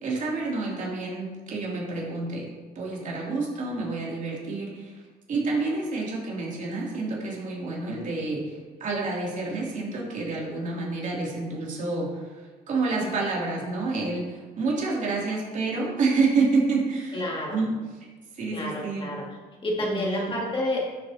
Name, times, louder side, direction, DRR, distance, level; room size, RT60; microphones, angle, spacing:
voice 1, 0.0-5.0 5.3-17.2 17.5-17.7 18.3-19.1 19.8-20.4, right 3 dB, 50° right, -4 dB, 2.9 m, -28 dB
voice 2, 17.1-17.6 18.5-19.2 19.6-20.9, left 1 dB, 30° left, -3 dB, 2.2 m, -29 dB
11.5 x 7.1 x 2.9 m, 1.3 s
cardioid pair, 110°, 17 cm